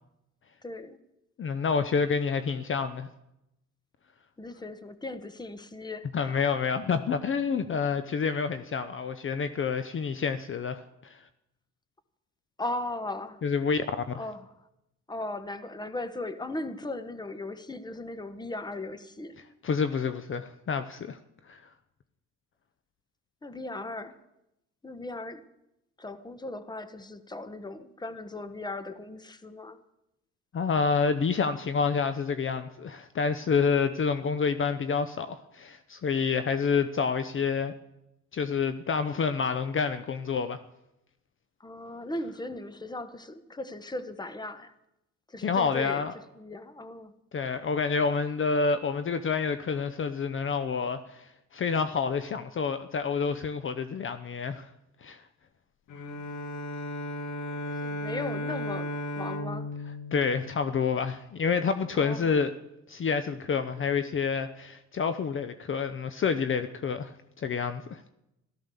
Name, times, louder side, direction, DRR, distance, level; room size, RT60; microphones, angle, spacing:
voice 1, 0.6-1.0 4.4-6.4 12.6-13.4 14.2-14.5 15.1-19.3 23.4-24.1 24.8-25.4 26.0-29.8 41.6-44.7 45.3-46.1 46.3-47.1 57.8-59.7 61.9-62.4, left 2 dB, 15° left, 12 dB, 1.2 m, -37 dB
voice 2, 1.4-3.1 6.1-11.2 13.4-13.8 14.1-14.2 19.6-21.2 21.5-21.6 30.5-37.7 38.3-40.6 45.4-46.1 47.3-54.7 55.0-55.2 60.1-62.5 62.9-68.0, left 5 dB, 40° left, 11 dB, 0.8 m, -28 dB
Bowed string instrument, 55.9-61.1, left 1 dB, 85° left, 1.7 m, -35 dB
13.5 x 13.0 x 6.9 m, 0.87 s
cardioid pair, 90°, 30 cm